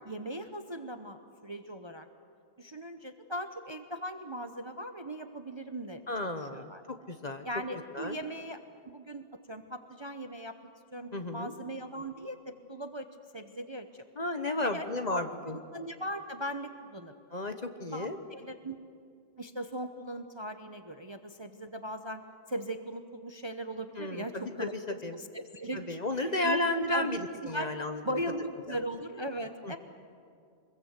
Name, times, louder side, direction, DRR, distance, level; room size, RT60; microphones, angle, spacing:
voice 1, 0.0-2.1 2.6-6.0 6.5-6.8 7.4-8.6 8.9-10.6 10.9-13.1 13.3-14.0 14.6-14.8 15.1-17.1 17.9-18.8 19.4-24.7 25.1-26.6 26.9-27.7 28.0-29.8, right 1 dB, 25° right, 8 dB, 0.8 m, -39 dB
voice 2, 6.1-6.7 7.1-7.5 7.9-8.2 11.1-11.5 14.2-15.6 17.3-18.2 24.0-25.2 25.7-28.0 28.7-28.8 29.6-29.8, left 2 dB, 35° left, 8 dB, 1.1 m, -33 dB
24.5 x 21.5 x 8.2 m, 2.4 s
omnidirectional pair, 1.3 m